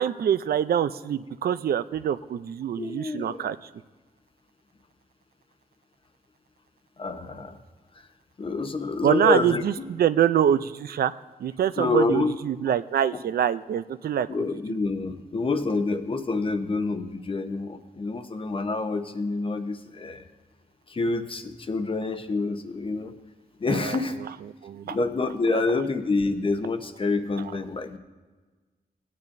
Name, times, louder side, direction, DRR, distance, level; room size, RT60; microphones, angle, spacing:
voice 1, 0.0-3.6 9.0-11.1 11.4-14.3 14.7-14.8 23.7-24.0 24.6-25.0 25.5-25.6, right 9 dB, 80° right, 13 dB, 0.4 m, -25 dB
voice 2, 2.8-3.5 7.0-7.6 8.4-9.8 11.8-12.3 14.3-20.2 20.9-23.1 23.6-24.2 24.8-28.0, left 3 dB, 35° left, 7 dB, 0.9 m, -27 dB
18.5 x 9.6 x 2.6 m, 1.3 s
wide cardioid pair, 140°, 15 cm